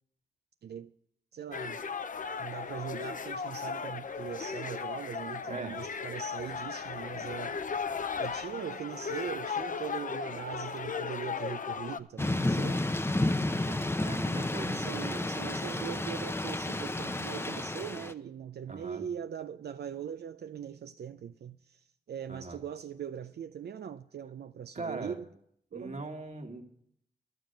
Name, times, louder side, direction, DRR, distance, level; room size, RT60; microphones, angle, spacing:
voice 1, 1.3-1.8 2.4-7.6 8.2-12.9 13.5-13.8 14.7-25.3 25.7-26.0, right 8 dB, 75° right, 0.4 m, -41 dB
sound 1, 1.5-12.0, left 6 dB, 50° left, 0.6 m, -36 dB
voice 2, 5.5-5.8 14.0-15.4 18.7-19.0 22.3-22.6 24.7-25.2 25.7-26.6, right 3 dB, 45° right, 1.7 m, -40 dB
Thunder / Rain, 12.2-18.1, left 2 dB, 15° left, 0.6 m, -31 dB
12.0 x 7.3 x 7.8 m
wide cardioid pair, 90°, 17 cm